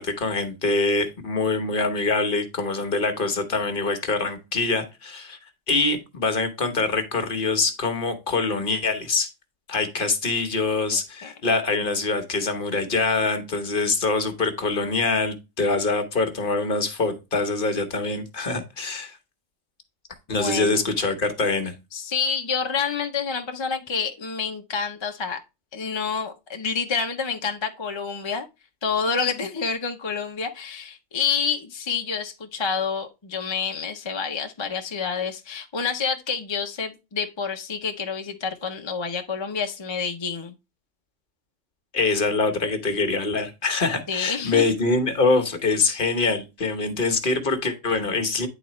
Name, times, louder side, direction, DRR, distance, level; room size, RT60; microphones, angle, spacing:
voice 1, 0.0-5.4 5.7-9.3 9.7-19.2 20.3-21.7 41.9-48.5, left 3 dB, 45° left, 1.2 m, -24 dB
voice 2, 10.9-11.3 20.3-20.8 21.9-25.4 25.7-28.5 28.8-40.5 44.1-44.6, left 6 dB, 25° left, 0.7 m, -28 dB
9.9 x 4.1 x 3.0 m
omnidirectional pair, 1.3 m